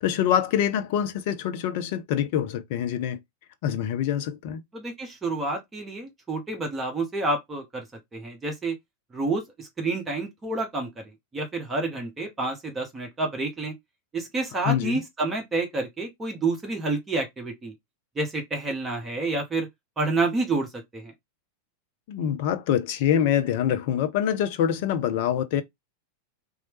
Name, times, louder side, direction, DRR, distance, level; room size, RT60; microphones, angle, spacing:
voice 1, 0.0-3.2 3.6-4.6 14.6-15.0 22.1-25.6, left 9 dB, 50° left, 0.4 m, -25 dB
voice 2, 4.7-7.8 8.1-8.7 9.1-13.7 14.1-17.7 18.2-19.7 20.0-21.1, right 3 dB, 15° right, 0.9 m, -29 dB
3.0 x 2.0 x 2.9 m
figure-of-eight pair, 90°, 0 cm